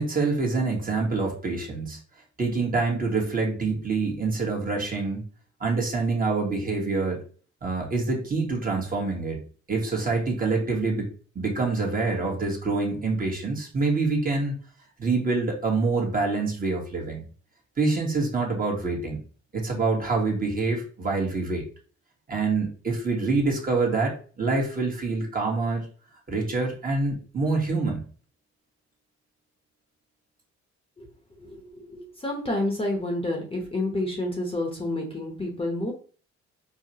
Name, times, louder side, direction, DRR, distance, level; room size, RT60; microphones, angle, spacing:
voice 1, 0.0-2.0 2.4-5.2 5.6-7.2 7.6-9.4 9.7-11.1 11.3-14.5 15.0-17.2 17.8-19.2 19.5-21.6 22.3-25.9 26.3-28.0, right 3 dB, 30° right, -1 dB, 1.2 m, -26 dB
voice 2, 31.4-35.9, left 1 dB, 20° left, 0 dB, 0.9 m, -29 dB
4.7 x 2.2 x 2.8 m, 0.41 s
cardioid pair, 90°, 30 cm